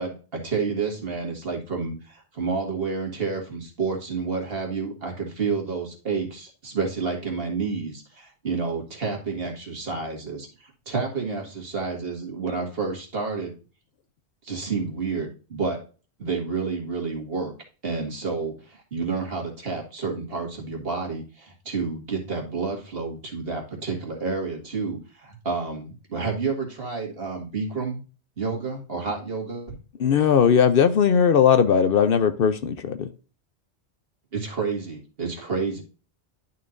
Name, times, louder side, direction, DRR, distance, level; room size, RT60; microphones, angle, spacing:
voice 1, 0.0-13.5 14.4-15.8 16.2-17.5 17.8-28.0 28.4-29.8 34.3-35.8, right 4 dB, 60° right, 1 dB, 2.1 m, -30 dB
voice 2, 30.0-33.1, left 7 dB, 60° left, 11 dB, 0.8 m, -18 dB
11.5 x 4.4 x 2.5 m, 0.34 s
omnidirectional pair, 1.1 m